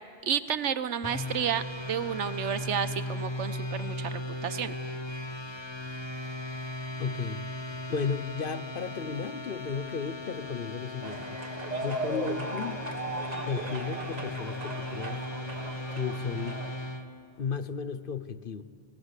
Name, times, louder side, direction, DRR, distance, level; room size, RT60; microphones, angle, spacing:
voice 1, 0.2-4.8, right 8 dB, 80° right, 1.1 m, -31 dB
sound 1, 1.0-17.1, left 1 dB, 25° left, 1.0 m, -37 dB
voice 2, 7.0-11.4 11.8-12.9 13.4-15.2 16.0-16.6 17.4-18.6, left 5 dB, 55° left, 0.9 m, -34 dB
sound 2, 11.0-16.8, right 1 dB, 35° right, 1.6 m, -37 dB
29.5 x 18.0 x 8.2 m
omnidirectional pair, 1.2 m